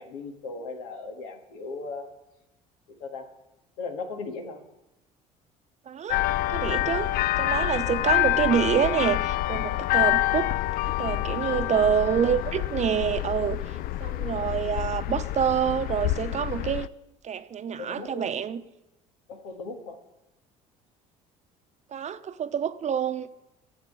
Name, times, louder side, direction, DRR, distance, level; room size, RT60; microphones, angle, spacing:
voice 1, 0.0-2.1 3.0-3.3 3.8-4.6 11.5-11.9 14.3-14.6 17.8-18.3 19.3-20.0, left 3 dB, 80° left, 1.8 m, -37 dB
voice 2, 5.9-6.2 6.5-10.5 11.0-13.6 14.0-16.9 17.2-18.6 21.9-23.3, right 8 dB, 40° right, 0.9 m, -27 dB
sound 1, 6.1-16.9, left 16 dB, 55° left, 0.4 m, -27 dB
10.5 x 8.0 x 8.7 m
hypercardioid pair, 70°, 18 cm